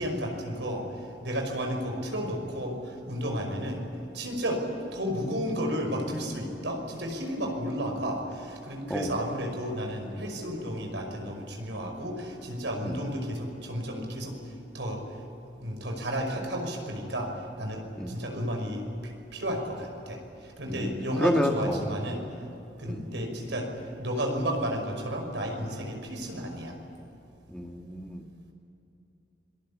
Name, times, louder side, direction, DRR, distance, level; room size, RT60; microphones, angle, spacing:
voice 1, 0.0-3.8 4.1-4.6 4.9-14.4 14.7-15.0 15.6-17.3 17.6-18.9 19.3-22.2 22.8-23.7 24.0-26.7, equal, 70° right, 3 dB, 5.6 m, -32 dB
voice 2, 20.7-21.9 22.9-23.1 27.5-28.3, left 1 dB, 5° left, 3 dB, 1.7 m, -29 dB
26.5 x 19.5 x 8.6 m, 2.9 s
head